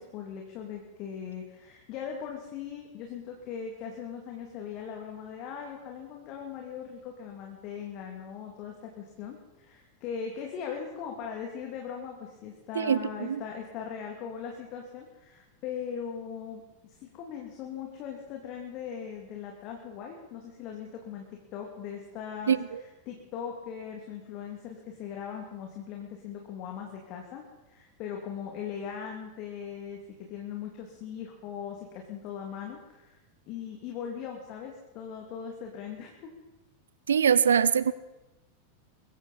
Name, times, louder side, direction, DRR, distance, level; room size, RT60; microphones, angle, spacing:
voice 1, 0.0-33.2 33.5-36.3, left 7 dB, 40° left, 2.4 m, -40 dB
voice 2, 12.8-13.4 22.5-22.8 37.1-37.9, right 7 dB, 65° right, 0.7 m, -23 dB
23.0 x 14.5 x 4.2 m
figure-of-eight pair, 90°, 0 cm